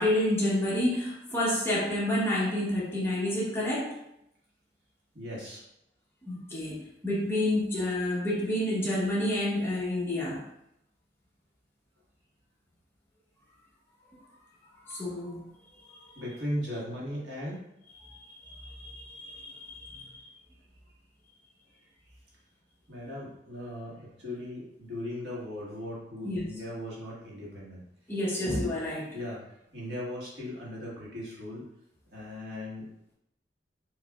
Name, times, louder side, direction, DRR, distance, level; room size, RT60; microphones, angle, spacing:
voice 1, 0.0-4.0 6.2-10.4 14.8-15.4 15.9-16.1 18.0-20.3 26.2-26.4 28.1-29.1, left 1 dB, 15° left, -6 dB, 1.1 m, -29 dB
voice 2, 5.1-5.6 16.2-17.6 22.9-27.8 28.4-28.7 29.1-29.4 29.7-31.6 32.1-32.9, left 1 dB, 70° right, -6 dB, 1.7 m, -38 dB
6.5 x 2.8 x 2.4 m, 0.79 s
head